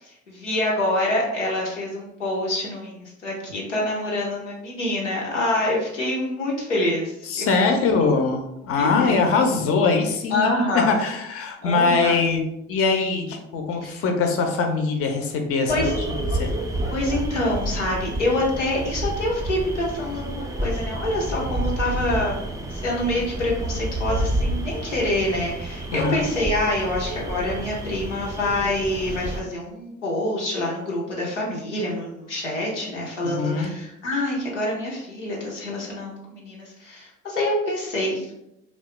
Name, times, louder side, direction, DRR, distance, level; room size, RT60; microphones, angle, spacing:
voice 1, 0.0-8.1 8.8-9.2 10.3-11.0 11.6-12.2 13.8-14.0 15.7-15.9 16.9-22.4 22.7-38.3, left 1 dB, 90° left, -4 dB, 0.5 m, -26 dB
voice 2, 7.3-12.4 12.7-15.9 16.2-16.5 25.9-26.3 33.2-33.7, left 4 dB, 40° left, 4 dB, 0.5 m, -22 dB
sound 1, 15.7-29.4, right 1 dB, 10° right, 0.4 m, -29 dB
2.9 x 2.1 x 3.0 m, 0.84 s
figure-of-eight pair, 40°, 35 cm